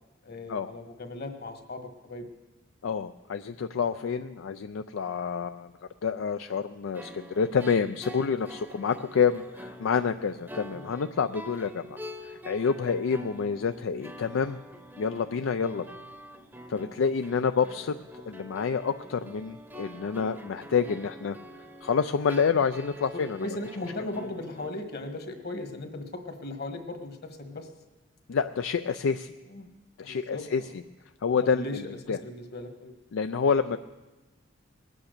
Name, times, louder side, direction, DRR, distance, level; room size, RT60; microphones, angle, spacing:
voice 1, 0.2-2.3 3.9-4.2 10.7-10.9 15.7-16.0 23.0-27.7 29.5-29.7 30.0-30.8 31.4-33.0, left 2 dB, 55° left, 5 dB, 1.6 m, -38 dB
voice 2, 2.8-5.7 6.0-12.0 12.2-14.6 15.0-15.8 16.7-18.0 18.3-21.4 21.8-23.5 28.3-29.3 30.0-30.6 31.2-31.6 32.1-32.2 33.1-33.8, left 6 dB, 75° left, 9 dB, 0.4 m, -28 dB
sound 1, 6.9-24.7, equal, 10° right, 0.8 m, -45 dB
20.0 x 8.6 x 6.6 m, 1.1 s
head